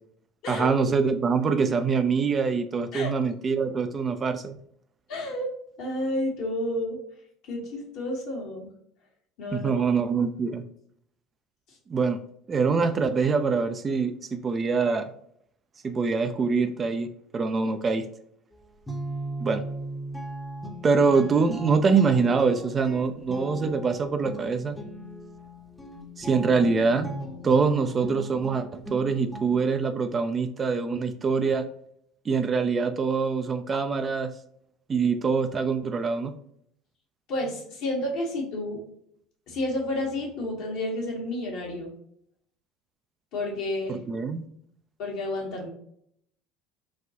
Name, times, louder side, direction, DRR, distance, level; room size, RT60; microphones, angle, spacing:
voice 1, 0.5-4.6 9.5-10.6 11.9-12.2 12.5-15.1 15.8-17.1 17.3-18.1 19.4-19.6 20.8-24.8 26.2-27.1 27.4-31.7 32.3-34.3 34.9-36.3 43.9-44.5, right 5 dB, 30° right, 8 dB, 0.3 m, -24 dB
voice 2, 5.1-7.0 7.5-8.7 9.4-9.8 37.3-38.8 39.5-41.9 43.3-44.0 45.0-45.7, left 1 dB, 55° left, 0 dB, 1.1 m, -30 dB
Guitar, 18.5-29.8, right 1 dB, 5° left, 0.7 m, -38 dB
4.0 x 2.2 x 2.7 m, 0.68 s
figure-of-eight pair, 65°, 0 cm